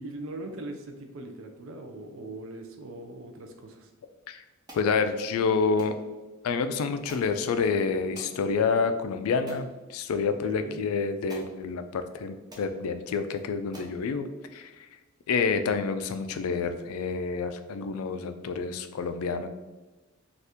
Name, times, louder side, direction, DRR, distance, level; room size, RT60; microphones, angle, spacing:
voice 1, 0.0-3.9 10.4-10.8, right 2 dB, 65° right, 4 dB, 0.4 m, -40 dB
voice 2, 4.7-6.0 6.4-14.7 15.3-19.5, left 5 dB, 90° left, 9 dB, 0.3 m, -28 dB
sound 1, 4.7-4.9 5.8-6.0 7.1-7.3 8.2-8.4 8.9-9.0 9.5-9.7 10.8-10.9 11.3-11.5 12.2-12.3 12.5-12.7 13.3-13.4 13.7-14.0, right 1 dB, 20° right, 0.6 m, -46 dB
2.7 x 2.4 x 3.4 m, 1.1 s
head